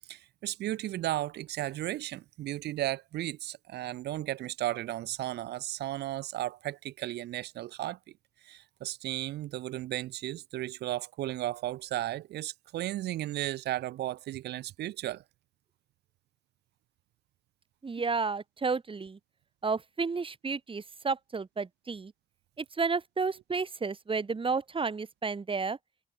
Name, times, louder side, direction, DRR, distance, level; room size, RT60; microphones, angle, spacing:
voice 1, 0.1-8.0 8.4-15.2 18.0-18.1, right 14 dB, 85° right, 2.5 m, -35 dB
voice 2, 17.8-19.2 19.6-22.1 22.6-25.8, right 4 dB, 30° right, 2.4 m, -32 dB
cardioid pair, 75°, 17 cm